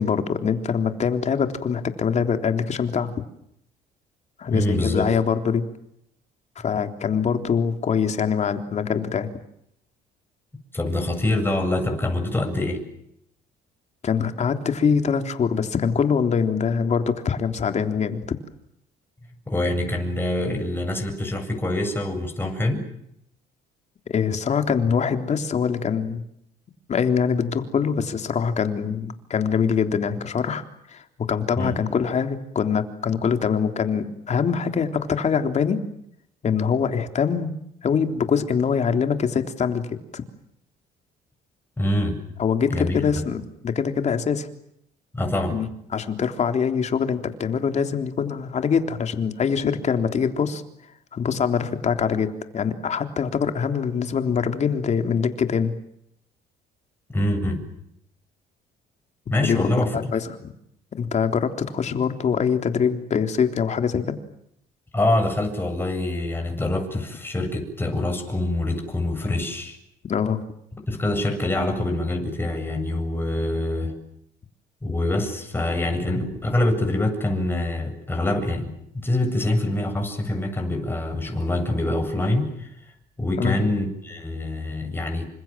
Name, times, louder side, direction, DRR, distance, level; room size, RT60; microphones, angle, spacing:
voice 1, 0.0-3.1 4.4-5.7 6.6-9.3 14.0-18.2 24.1-26.2 26.9-30.6 30.9-35.9 36.4-37.5 37.8-40.2 42.4-44.5 45.5-45.7 45.9-50.6 51.1-55.7 59.4-60.5 61.0-64.2 70.1-70.4 83.4-83.6, left 6 dB, 45° left, 7 dB, 3.6 m, -24 dB
voice 2, 4.5-5.0 10.7-12.8 19.5-22.9 31.6-31.8 41.8-42.2 42.7-43.1 45.1-45.6 57.1-57.6 59.3-60.1 64.9-69.8 70.9-73.9 74.8-82.7 83.2-85.3, left 1 dB, 15° left, 3 dB, 8.0 m, -25 dB
29.0 x 26.0 x 7.6 m, 0.76 s
cardioid pair, 110°, 17 cm